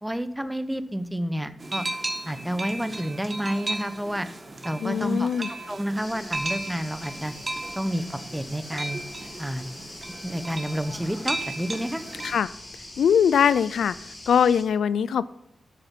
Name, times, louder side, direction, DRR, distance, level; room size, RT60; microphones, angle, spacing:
voice 1, 0.0-1.8 2.3-4.3 4.6-7.3 7.7-8.0 8.3-9.0 9.4-9.7 10.2-12.0, equal, 5° right, 12 dB, 0.9 m, -29 dB
sound 1, 1.6-12.4, right 2 dB, 40° right, 1.6 m, -35 dB
voice 2, 4.8-5.5 12.2-12.5 13.0-13.9 14.3-15.2, left 8 dB, 85° left, 18 dB, 0.3 m, -21 dB
sound 2, 6.0-14.6, left 1 dB, 25° left, 4.1 m, -43 dB
8.4 x 6.7 x 7.4 m, 0.79 s
cardioid pair, 60°, 0 cm